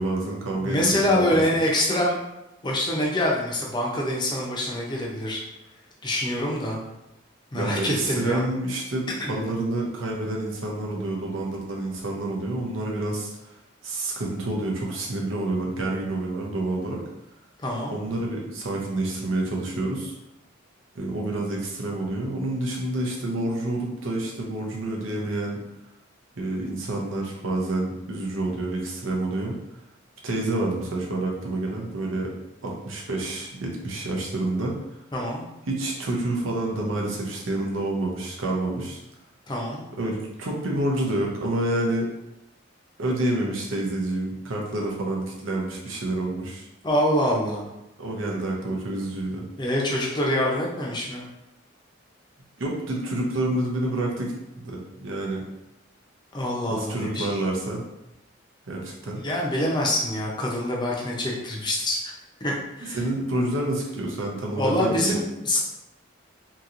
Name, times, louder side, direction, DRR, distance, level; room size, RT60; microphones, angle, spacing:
voice 1, 0.0-1.4 7.5-13.5 13.8-17.0 17.9-20.1 20.9-25.6 26.4-29.5 30.2-32.3 32.6-34.8 35.7-39.0 40.0-42.1 43.0-46.7 48.0-49.4 52.6-55.4 56.7-57.8 58.7-59.2 62.9-65.2, right 2 dB, 85° right, -1 dB, 0.7 m, -28 dB
voice 2, 0.6-2.2 2.6-5.4 6.0-6.8 7.5-8.4 9.2-9.4 17.6-17.9 35.1-35.4 39.5-39.8 46.8-47.6 49.6-51.2 56.3-57.3 59.2-62.1 62.4-63.0 64.5-65.6, left 1 dB, 20° left, -3 dB, 0.5 m, -25 dB
2.9 x 2.8 x 2.5 m, 0.91 s
head